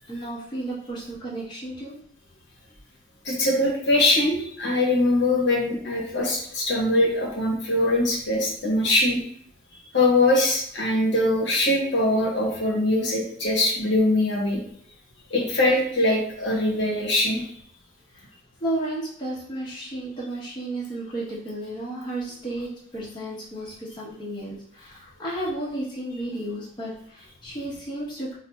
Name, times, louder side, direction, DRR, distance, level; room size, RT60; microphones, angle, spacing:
voice 1, 0.1-2.0 18.1-18.3 18.6-28.4, right 1 dB, 25° left, -7 dB, 0.8 m, -33 dB
voice 2, 3.2-9.2 9.9-14.6 15.3-17.5, left 1 dB, 60° left, -2 dB, 0.9 m, -22 dB
4.0 x 2.5 x 2.2 m, 0.64 s
head